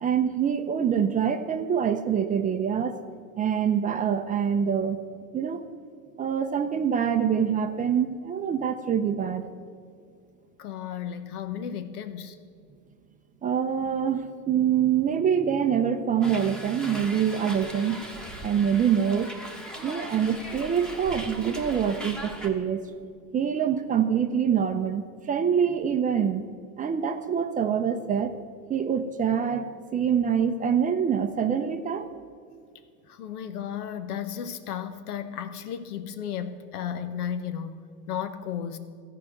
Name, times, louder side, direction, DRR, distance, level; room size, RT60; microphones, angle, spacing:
voice 1, 0.0-3.0 3.4-5.0 5.3-5.6 6.2-9.5 13.4-18.0 18.4-19.3 19.8-22.9 23.3-26.4 26.8-28.4 28.7-32.1, right 8 dB, 20° right, 8 dB, 0.4 m, -25 dB
voice 2, 10.6-12.4 33.1-37.8 38.1-38.8, left 8 dB, 85° left, 10 dB, 0.9 m, -34 dB
Hiss, 16.2-22.5, right 1 dB, ahead, 1.1 m, -39 dB
14.0 x 4.9 x 8.7 m, 2.1 s
supercardioid pair, 110°, 43 cm